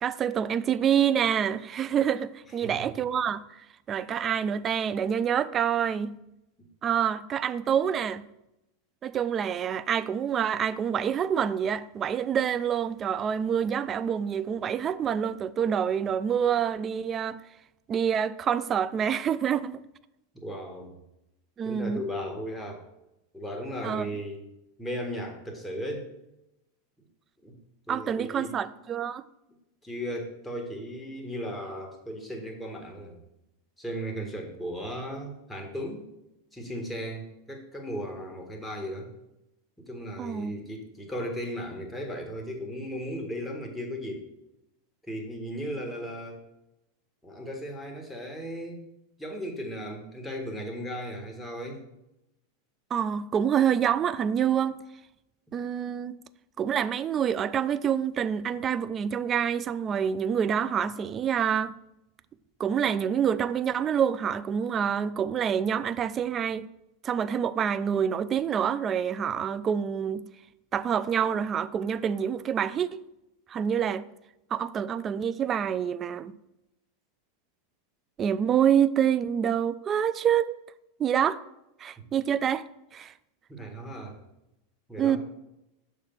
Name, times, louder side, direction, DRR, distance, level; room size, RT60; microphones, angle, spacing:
voice 1, 0.0-3.4 3.9-6.1 6.8-8.3 9.0-17.4 17.9-19.8 21.6-22.0 23.8-24.1 27.9-29.2 40.2-40.6 52.9-54.8 55.5-56.2 56.6-61.7 62.6-66.7 67.0-70.2 70.7-73.0 73.5-74.0 74.5-76.3 78.2-80.6 81.0-81.4 81.8-82.7 82.9-83.1 85.0-85.2, right 8 dB, 30° right, 0.3 m, -27 dB
voice 2, 20.3-20.9 21.6-22.8 23.3-24.5 24.8-26.1 27.4-27.6 27.9-28.5 29.8-33.2 33.8-36.1 36.5-39.1 39.8-44.3 45.0-46.4 47.2-48.8 49.2-51.8 83.5-84.2 84.9-85.2, equal, 5° left, 1.6 m, -36 dB
6.5 x 3.4 x 5.7 m
hypercardioid pair, 95°, 0 cm